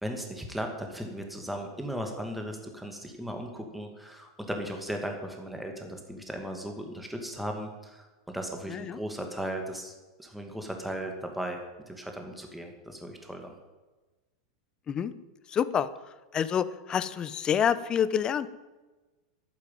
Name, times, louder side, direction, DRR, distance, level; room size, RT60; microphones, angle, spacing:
voice 1, 0.0-13.6, equal, ahead, 3 dB, 2.2 m, -37 dB
voice 2, 8.7-9.0 14.9-15.1 15.5-15.9 16.3-18.5, left 8 dB, 25° left, 15 dB, 0.9 m, -27 dB
11.5 x 9.8 x 9.2 m, 1.2 s
hypercardioid pair, 120°, 3 cm